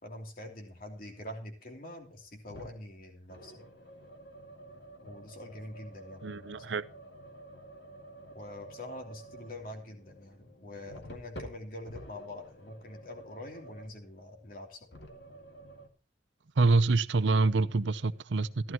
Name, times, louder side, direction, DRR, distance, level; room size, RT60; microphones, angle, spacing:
voice 1, 0.0-3.7 5.0-6.6 8.3-14.9, left 1 dB, 50° left, 3.0 m, -45 dB
sound 1, 2.5-2.9 3.3-14.0 14.9-15.9, right 1 dB, 65° left, 2.2 m, -50 dB
voice 2, 6.2-6.8 16.6-18.7, right 3 dB, 75° right, 0.6 m, -26 dB
15.0 x 12.5 x 3.0 m
head